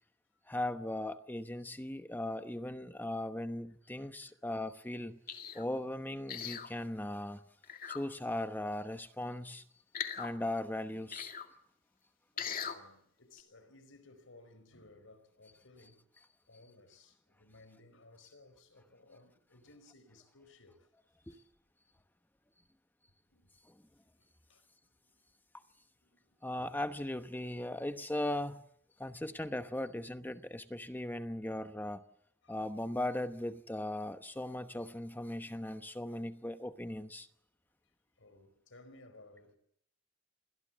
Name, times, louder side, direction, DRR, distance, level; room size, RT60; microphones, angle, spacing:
voice 1, 0.5-5.2 5.5-7.4 7.8-9.6 10.2-11.4 21.3-21.4 23.7-23.8 26.4-28.6 29.0-32.0 32.5-37.3, left 1 dB, 10° left, 1.0 m, -38 dB
voice 2, 3.8-4.5 12.3-16.1 16.5-20.9 21.3-21.4 23.3-23.5 24.5-24.6 25.0-25.1 26.0-26.4 32.4-32.6 38.2-39.6, left 2 dB, 80° left, 4.7 m, -59 dB
sound 1, 5.3-5.6 6.3-6.7 7.6-8.0 9.9-10.3 11.1-11.5 12.4-12.8 13.4-13.5, left 7 dB, 45° left, 2.4 m, -39 dB
28.5 x 22.5 x 7.4 m
head